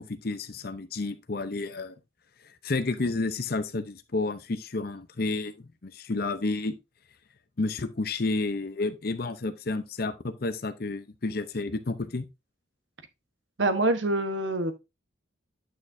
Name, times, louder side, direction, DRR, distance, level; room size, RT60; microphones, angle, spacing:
voice 1, 0.0-2.0 2.4-5.5 5.8-6.8 7.6-12.3, left 3 dB, 50° left, 0.7 m, -31 dB
voice 2, 13.6-14.7, right 2 dB, 70° right, 1.1 m, -25 dB
9.4 x 6.4 x 2.6 m
head